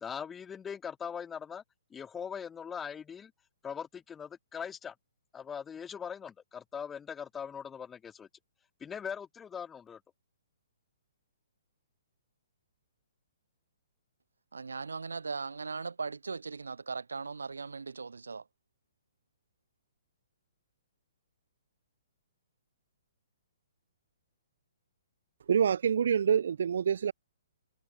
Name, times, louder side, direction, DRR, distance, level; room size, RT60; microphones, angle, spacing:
voice 1, 0.0-1.6 1.9-3.3 3.6-4.9 5.3-8.3 8.8-10.0, left 7 dB, 15° left, 0.5 m, -41 dB
voice 2, 14.5-18.4, right 4 dB, 85° right, 2.9 m, -38 dB
voice 3, 25.5-27.1, right 7 dB, 65° right, 0.7 m, -26 dB
hypercardioid pair, 135°, 0 cm